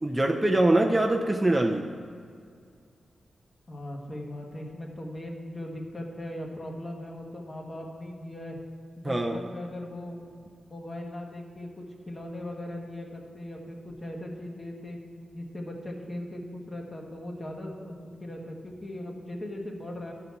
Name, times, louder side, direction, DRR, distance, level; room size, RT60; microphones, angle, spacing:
voice 1, 0.0-1.8 9.0-9.4, right 1 dB, 15° right, 1 dB, 0.5 m, -23 dB
voice 2, 3.7-8.6 9.0-10.2 10.7-15.0 15.3-20.1, left 1 dB, 30° left, 0 dB, 1.3 m, -39 dB
11.0 x 4.0 x 5.8 m, 2.2 s
cardioid pair, 85°, 0 cm